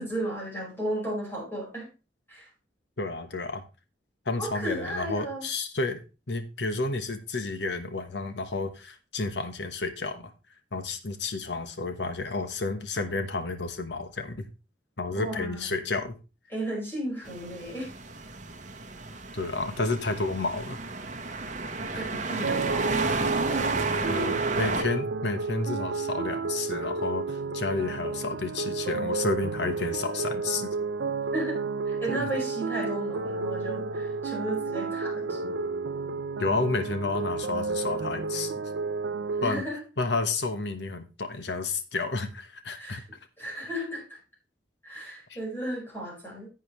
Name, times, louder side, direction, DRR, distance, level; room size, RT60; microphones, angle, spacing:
voice 1, 0.0-1.9 2.3-2.5 4.4-5.5 15.2-15.8 16.5-17.9 22.0-23.7 31.3-31.6 31.8-35.6 39.4-39.8 42.8-43.0 43.4-44.2 44.8-46.5, right 1 dB, 15° left, -3 dB, 5.0 m, -34 dB
voice 2, 3.0-3.6 4.3-10.3 10.7-14.4 15.0-16.1 19.3-20.8 21.9-22.0 24.0-30.7 32.1-32.3 36.4-38.7 39.4-39.6 40.0-43.0 45.3-45.4, left 3 dB, 70° left, 8 dB, 1.2 m, -31 dB
sound 1, 17.3-24.8, right 3 dB, 40° right, 1.2 m, -32 dB
sound 2, 22.4-39.6, right 4 dB, 80° right, 0.5 m, -31 dB
10.5 x 8.1 x 3.2 m, 0.29 s
head